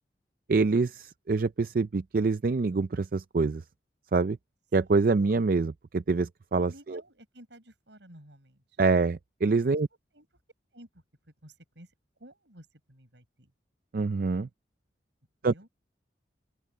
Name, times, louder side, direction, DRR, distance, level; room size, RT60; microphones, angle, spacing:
voice 1, 0.5-3.6 4.1-4.4 4.7-7.0 8.8-9.9 13.9-14.5 15.4-15.7, right 4 dB, 50° right, 0.4 m, -26 dB
voice 2, 4.8-5.1 6.5-8.8 10.1-10.3 10.7-11.0 11.4-11.9 12.2-13.5 15.5-15.7, right 1 dB, 75° right, 6.5 m, -53 dB
open air
head